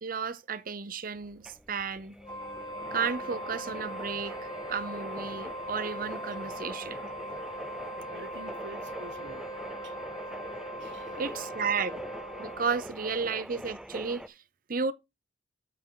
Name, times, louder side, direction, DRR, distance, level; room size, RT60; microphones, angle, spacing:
voice 1, 0.0-2.1 2.9-4.3 4.7-7.1 11.2-12.0 12.4-14.4 14.7-14.9, right 5 dB, 50° right, 0.7 m, -33 dB
sound 1, 1.2-14.3, equal, 5° right, 0.4 m, -43 dB
Wind instrument woodwind instrument, 2.2-12.8, equal, 20° left, 1.4 m, -40 dB
voice 2, 8.1-9.4 9.8-10.0 10.8-11.2, right 3 dB, 75° right, 1.0 m, -48 dB
7.8 x 7.4 x 3.9 m
head